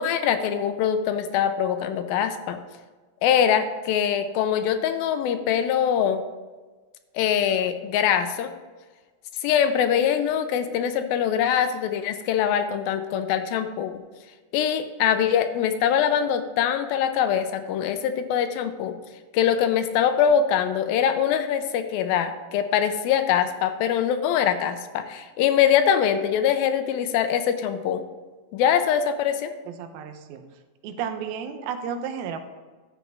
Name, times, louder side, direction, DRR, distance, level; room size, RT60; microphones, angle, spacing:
voice 1, 0.0-2.6 3.2-6.2 7.2-8.5 9.4-14.0 14.5-19.0 19.3-28.0 28.5-29.5, left 8 dB, 85° left, 8 dB, 2.4 m, -23 dB
voice 2, 29.7-30.4 30.8-32.4, right 7 dB, 85° right, 7 dB, 2.7 m, -32 dB
12.5 x 7.9 x 3.5 m, 1.3 s
omnidirectional pair, 4.3 m